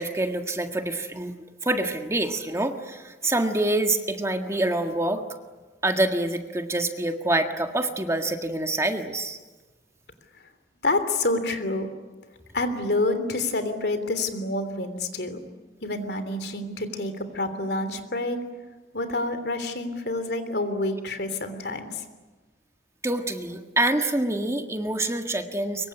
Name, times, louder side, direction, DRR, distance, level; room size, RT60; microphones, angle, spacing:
voice 1, 0.0-1.3 1.6-5.2 5.8-9.4 23.0-25.9, right 2 dB, 15° right, 5 dB, 1.7 m, -26 dB
voice 2, 10.8-11.9 12.5-15.4 15.8-18.4 18.9-22.0, left 2 dB, 65° left, 9 dB, 3.3 m, -28 dB
25.0 x 23.0 x 10.0 m, 1.3 s
head